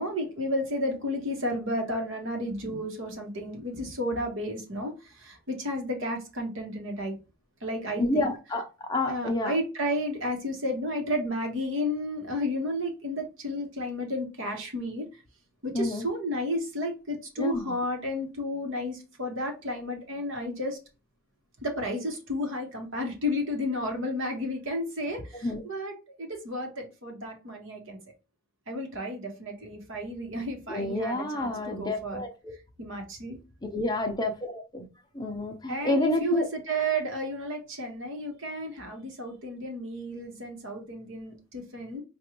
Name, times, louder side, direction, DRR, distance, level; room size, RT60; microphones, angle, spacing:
voice 1, 0.0-7.1 7.6-8.3 9.1-15.1 15.6-20.8 21.6-28.0 28.7-32.2 32.8-33.4 35.6-42.0, equal, 55° right, 1.2 m, -32 dB
voice 2, 8.0-9.5 15.7-16.0 17.4-17.7 25.4-25.6 30.7-32.5 33.7-34.8 35.1-36.5, left 2 dB, 20° left, 0.7 m, -29 dB
4.9 x 2.5 x 3.0 m
head